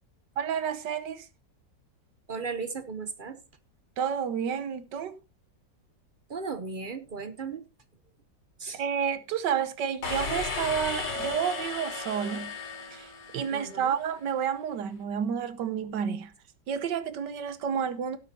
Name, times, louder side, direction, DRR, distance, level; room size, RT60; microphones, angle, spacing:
voice 1, 0.4-1.3 4.0-5.1 8.7-12.5 12.9-16.3 16.7-18.2, right 7 dB, 75° right, 1.5 m, -30 dB
voice 2, 2.3-3.4 6.3-7.6 8.6-8.8 13.5-13.9, right 4 dB, 45° right, 0.6 m, -36 dB
sound 1, 10.0-13.8, left 3 dB, 80° left, 3.1 m, -34 dB
17.5 x 8.3 x 2.8 m
omnidirectional pair, 1.9 m